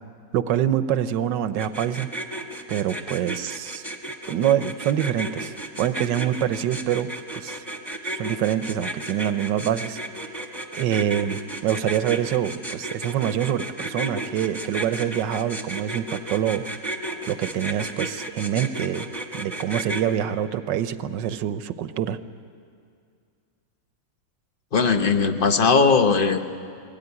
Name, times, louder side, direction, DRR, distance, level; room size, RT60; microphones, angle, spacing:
voice 1, 0.3-2.1 2.7-3.8 4.3-7.6 8.0-10.0 10.4-16.6 17.3-19.1 19.3-22.2, right 10 dB, 75° right, 12 dB, 1.3 m, -25 dB
sound 1, 1.6-20.0, right 1 dB, ahead, 1.4 m, -33 dB
voice 2, 24.7-26.4, left 5 dB, 40° left, 7 dB, 0.8 m, -19 dB
22.0 x 17.5 x 9.7 m, 2.3 s
omnidirectional pair, 2.0 m